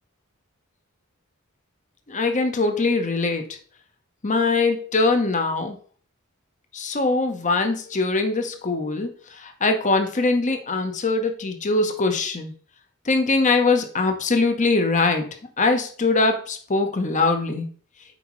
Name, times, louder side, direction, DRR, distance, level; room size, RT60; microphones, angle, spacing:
voice 1, 2.1-3.4 4.2-5.8 6.7-12.5 13.1-15.3 15.6-17.7, left 3 dB, 35° left, 6 dB, 0.9 m, -22 dB
7.8 x 4.9 x 3.1 m, 0.42 s
head